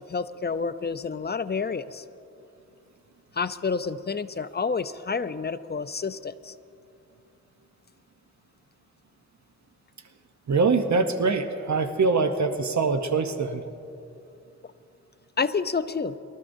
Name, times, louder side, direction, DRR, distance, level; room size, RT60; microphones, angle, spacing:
voice 1, 0.1-2.0 3.3-6.5 15.4-16.2, left 5 dB, 35° left, 13 dB, 0.5 m, -29 dB
voice 2, 10.5-13.6, right 4 dB, 65° right, 7 dB, 0.8 m, -23 dB
23.0 x 13.0 x 2.6 m, 2.7 s
cardioid pair, 50°, 30 cm